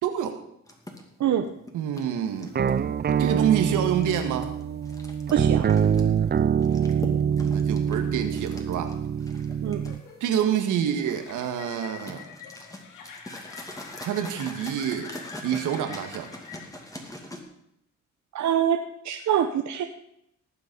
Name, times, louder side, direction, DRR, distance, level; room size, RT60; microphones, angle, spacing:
voice 1, 0.0-0.4 1.7-2.5 3.1-4.5 7.4-8.9 10.2-12.2 14.0-15.1 15.4-16.3, right 9 dB, 85° right, 6 dB, 1.9 m, -27 dB
sound 1, 0.7-17.4, left 1 dB, 10° left, 2.5 m, -43 dB
sound 2, 2.6-10.0, right 8 dB, 35° right, 0.5 m, -25 dB
voice 2, 5.3-5.7 9.6-9.8 18.3-18.8 19.0-19.8, right 9 dB, 65° right, 6 dB, 0.9 m, -24 dB
sound 3, 9.5-17.1, left 6 dB, 85° left, 2.5 m, -45 dB
18.5 x 7.4 x 5.5 m, 0.77 s
cardioid pair, 90°, 30 cm